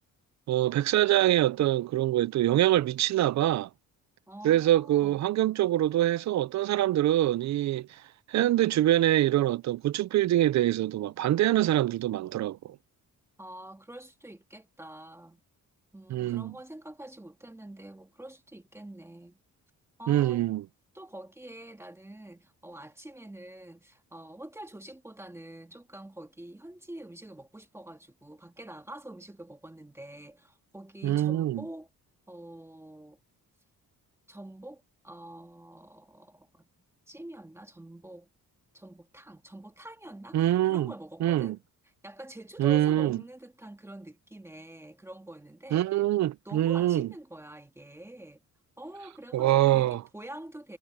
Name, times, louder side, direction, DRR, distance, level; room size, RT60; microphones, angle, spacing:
voice 1, 0.5-3.7 4.4-7.9 8.3-12.8 16.1-16.5 20.1-20.6 31.0-31.6 40.3-40.9 41.2-41.6 42.6-43.2 45.7-47.1 49.3-50.0, right 13 dB, 55° right, 0.5 m, -24 dB
voice 2, 4.3-5.2 13.4-15.4 15.9-19.4 20.0-20.5 20.9-31.9 32.3-33.2 34.3-36.7 37.1-38.3 38.7-41.6 42.0-45.9 46.5-48.4 48.8-50.8, right 1 dB, 10° right, 1.9 m, -46 dB
wide cardioid pair, 165°, 34 cm